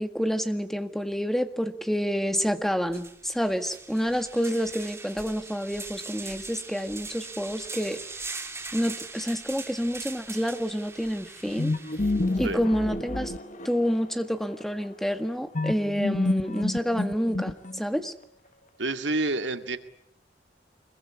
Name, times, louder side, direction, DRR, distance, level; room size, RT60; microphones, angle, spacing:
voice 1, 0.0-8.0 8.7-11.7 12.4-13.3 13.6-18.1, equal, ahead, 8 dB, 1.7 m, -28 dB
sound 1, 2.4-2.5 2.9-12.4, right 4 dB, 15° right, 2.6 m, -41 dB
sound 2, 11.6-14.1 15.5-18.0, left 2 dB, 45° left, 1.3 m, -29 dB
voice 2, 18.8-19.8, right 2 dB, 90° right, 8 dB, 2.1 m, -28 dB
25.5 x 22.0 x 9.8 m, 0.69 s
head